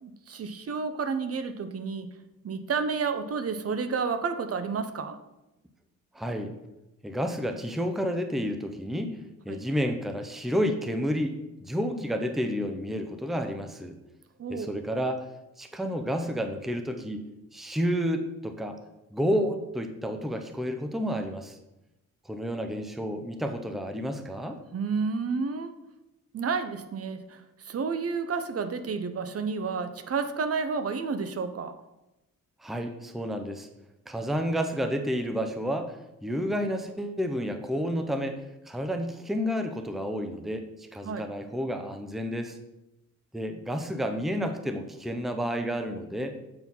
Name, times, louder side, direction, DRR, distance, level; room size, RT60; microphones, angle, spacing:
voice 1, 0.0-2.1 2.4-5.2 9.5-9.7 14.4-14.8 24.7-25.7 26.3-27.4 27.7-31.8 41.0-41.2, right 5 dB, 45° right, 10 dB, 0.8 m, -30 dB
voice 2, 6.1-6.5 7.0-9.2 9.4-14.0 14.5-15.3 15.6-17.2 17.5-18.8 19.1-21.6 22.3-24.6 32.6-33.7 34.1-42.6 43.3-46.3, equal, ahead, 6 dB, 0.7 m, -30 dB
7.8 x 4.6 x 5.4 m, 0.94 s
cardioid pair, 95°, 33 cm